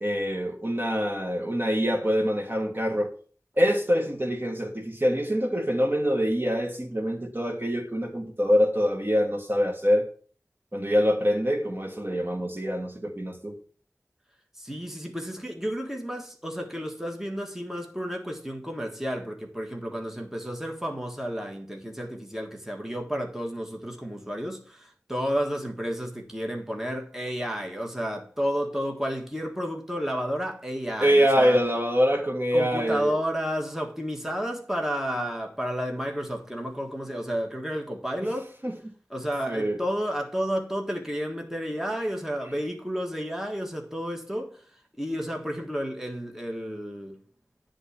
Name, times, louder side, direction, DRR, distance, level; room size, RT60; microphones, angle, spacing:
voice 1, 0.0-3.1 3.6-10.1 10.7-13.5 31.0-33.1 38.6-38.7 39.5-39.8, equal, 35° right, 1.7 m, -25 dB
voice 2, 14.6-31.6 32.5-38.5 39.1-44.6 45.0-47.2, equal, 5° right, 1.5 m, -31 dB
10.0 x 3.8 x 7.0 m
wide cardioid pair, 50°, 6 cm